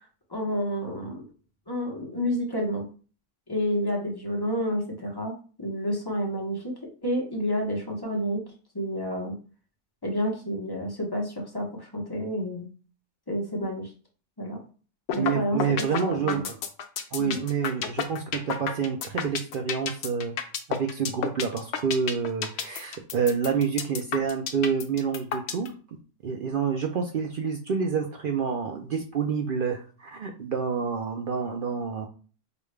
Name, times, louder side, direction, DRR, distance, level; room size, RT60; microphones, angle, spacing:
voice 1, 0.3-1.2 1.7-2.9 3.5-5.3 5.6-6.7 7.0-8.4 8.7-9.4 10.0-12.6 13.3-13.9 14.4-14.6 15.1-16.4 17.2-17.4, equal, 20° left, -1 dB, 0.9 m, -29 dB
sound 1, 15.1-15.3 15.6-25.7, left 7 dB, 65° left, 0.8 m, -30 dB
voice 2, 15.2-16.5 17.1-20.3 20.7-25.7 26.2-32.1, right 6 dB, 60° right, 3 dB, 0.6 m, -28 dB
5.0 x 2.3 x 3.2 m, 0.38 s
omnidirectional pair, 1.3 m